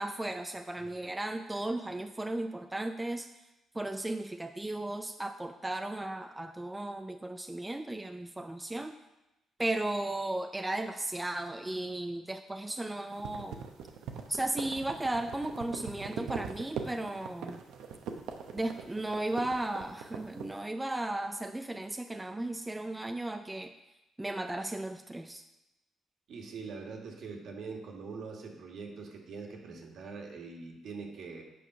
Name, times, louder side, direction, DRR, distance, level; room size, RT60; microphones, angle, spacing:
voice 1, 0.0-3.3 3.7-8.9 9.6-13.6 14.3-17.6 18.5-23.7 24.2-25.4, right 1 dB, 10° right, 6 dB, 0.5 m, -35 dB
sound 1, 13.1-20.5, right 7 dB, 85° right, 0.9 m, -41 dB
voice 2, 26.3-31.4, right 4 dB, 70° right, 1 dB, 1.8 m, -43 dB
8.5 x 5.0 x 5.9 m, 0.95 s
cardioid pair, 90°, 0 cm